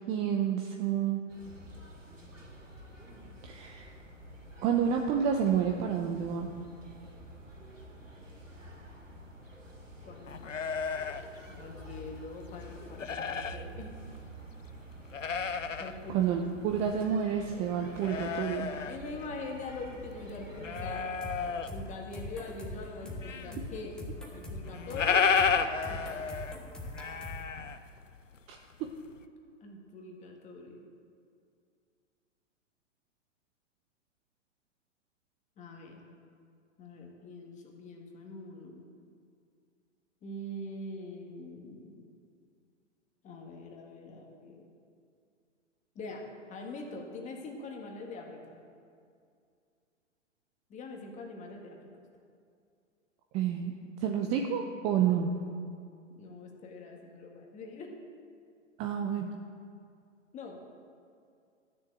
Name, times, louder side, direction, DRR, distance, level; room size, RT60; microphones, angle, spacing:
voice 1, 0.1-1.2 3.4-3.9 4.6-6.5 16.1-18.7 28.5-28.9 53.3-53.7 54.0-55.4 58.8-59.3, right 8 dB, 20° right, 3 dB, 0.6 m, -29 dB
sound 1, 1.3-20.8, equal, 85° right, 2.9 m, -49 dB
voice 2, 10.1-10.4 11.5-13.9 15.8-16.4 18.8-21.1 21.4-24.0 24.3-25.3 25.9-26.3 29.6-30.8 35.6-36.0 36.8-38.8 40.2-42.1 43.2-44.7 46.0-46.2 46.5-48.6 50.7-51.8 56.2-57.9 60.3-60.8, left 2 dB, 20° left, 1 dB, 1.7 m, -43 dB
sound 2, 10.3-12.2 12.5-13.7 14.1-14.2 14.8-15.9 16.3-16.4 16.8-19.8 20.1-22.0 22.4-23.6 23.9-24.0 24.2-24.3 24.5-28.4 28.7-29.2, left 6 dB, 80° left, 0.8 m, -32 dB
sound 3, 20.7-27.4, left 1 dB, ahead, 1.5 m, -42 dB
13.0 x 7.0 x 7.6 m, 2.4 s
figure-of-eight pair, 115°, 37 cm